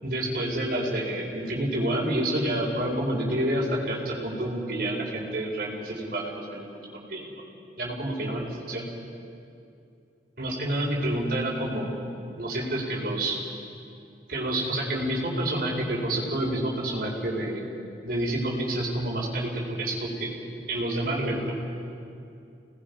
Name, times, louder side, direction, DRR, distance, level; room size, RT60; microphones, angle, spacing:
voice 1, 0.0-6.6 7.1-7.3 7.8-8.9 10.4-11.9 12.4-13.4 14.3-17.6 18.0-20.3 20.7-21.5, right 1 dB, 55° right, -2 dB, 5.1 m, -28 dB
29.5 x 19.5 x 5.5 m, 2.6 s
head